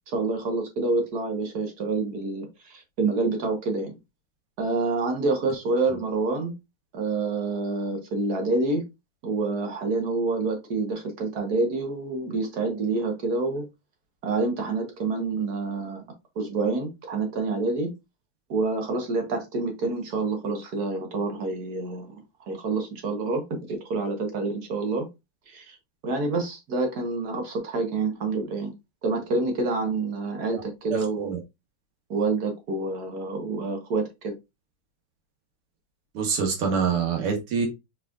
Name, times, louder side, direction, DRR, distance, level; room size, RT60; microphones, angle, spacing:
voice 1, 0.1-4.0 4.6-6.5 6.9-8.8 9.2-13.6 14.2-16.0 16.3-17.9 18.5-22.1 22.5-25.1 25.5-25.8 26.0-28.7 29.0-31.3 32.1-34.3, right 3 dB, 50° right, 1.5 m, -27 dB
voice 2, 30.9-31.4 36.1-37.7, right 6 dB, 80° right, 2.1 m, -26 dB
4.7 x 4.3 x 2.4 m
omnidirectional pair, 2.4 m